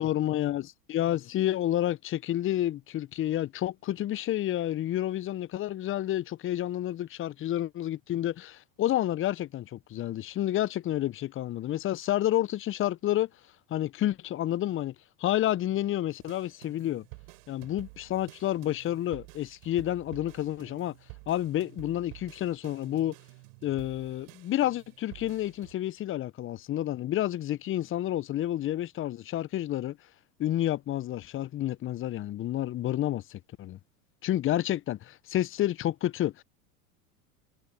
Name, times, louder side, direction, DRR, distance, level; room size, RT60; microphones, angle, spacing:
voice 1, 0.0-13.3 13.7-14.9 15.2-17.0 17.5-21.0 21.3-23.1 23.6-30.0 30.4-33.8 34.2-36.4, left 13 dB, 30° left, 0.7 m, -30 dB
sound 1, 16.2-25.7, right 40 dB or more, 60° right, 7.1 m, -51 dB
hypercardioid pair, 85°, 45 cm